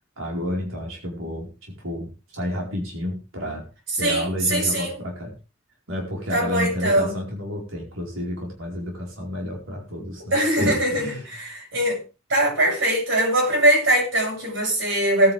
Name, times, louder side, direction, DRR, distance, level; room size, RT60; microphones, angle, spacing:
voice 1, 0.2-1.5 1.8-3.7 4.0-5.3 5.9-11.3, left 1 dB, 85° right, 4.7 m, -30 dB
voice 2, 4.0-5.0 6.3-7.1 10.3-12.0 12.3-15.3, right 1 dB, 70° right, 7.7 m, -21 dB
19.0 x 9.9 x 3.5 m
head